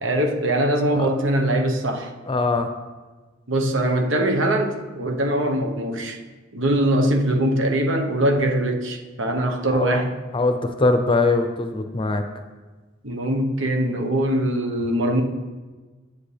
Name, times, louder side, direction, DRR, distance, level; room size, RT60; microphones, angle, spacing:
voice 1, 0.0-2.1 3.5-6.2 6.5-10.2 13.0-15.2, right 1 dB, 80° right, 3 dB, 1.1 m, -22 dB
voice 2, 2.3-2.7 9.7-10.0 10.3-12.2, left 3 dB, 25° left, 6 dB, 0.6 m, -21 dB
10.0 x 8.4 x 3.4 m, 1.3 s
head